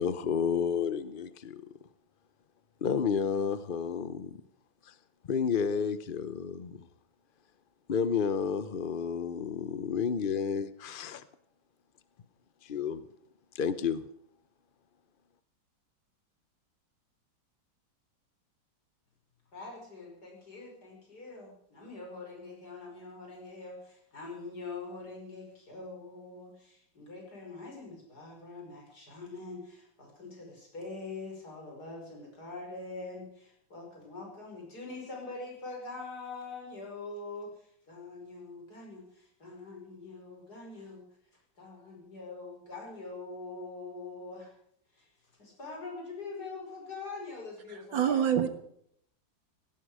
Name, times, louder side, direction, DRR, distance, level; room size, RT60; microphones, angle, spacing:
voice 1, 0.0-1.7 2.8-4.4 4.9-5.0 5.3-6.9 7.9-11.2 12.6-13.0 13.5-14.0, left 6 dB, 75° left, 14 dB, 0.4 m, -31 dB
voice 2, 19.5-41.1 41.6-44.5 44.9-48.3, left 3 dB, 50° left, -1 dB, 5.9 m, -44 dB
voice 3, 47.7-48.5, right 9 dB, 75° right, 9 dB, 2.2 m, -27 dB
17.5 x 16.5 x 4.9 m, 0.68 s
omnidirectional pair, 2.1 m